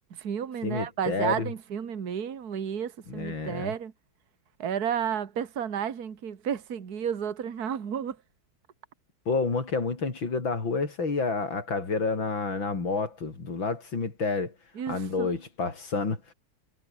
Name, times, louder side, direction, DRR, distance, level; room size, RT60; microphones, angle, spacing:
voice 1, 0.1-3.9 4.6-8.2 14.8-15.3, right 8 dB, 55° right, 2.1 m, -32 dB
voice 2, 0.6-1.5 3.1-3.7 9.3-14.5 14.9-16.3, left 4 dB, 80° left, 4.9 m, -29 dB
omnidirectional pair, 2.1 m